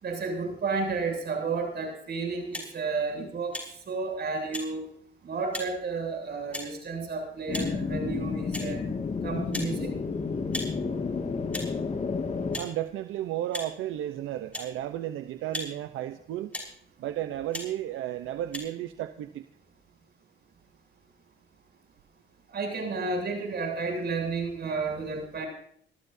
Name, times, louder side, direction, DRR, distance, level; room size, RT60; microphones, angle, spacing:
voice 1, 0.0-4.8 5.2-8.8 9.2-9.9 22.5-25.5, right 4 dB, 55° right, 7.4 m, -32 dB
sound 1, 2.5-2.7 3.5-3.7 4.5-4.7 5.5-5.7 6.5-6.7 7.5-7.7 8.5-8.7 9.5-9.7 10.5-10.7 11.5-11.7 12.5-12.7 13.5-13.7 14.5-14.7 15.5-15.7 16.5-16.7 17.5-17.7 18.5-18.6, left 1 dB, 5° left, 5.9 m, -36 dB
sound 2, 7.5-12.6, left 4 dB, 35° left, 2.0 m, -31 dB
voice 2, 12.5-16.6 17.0-19.5, right 12 dB, 85° right, 0.8 m, -33 dB
26.0 x 14.5 x 2.7 m
cardioid pair, 90°, 20 cm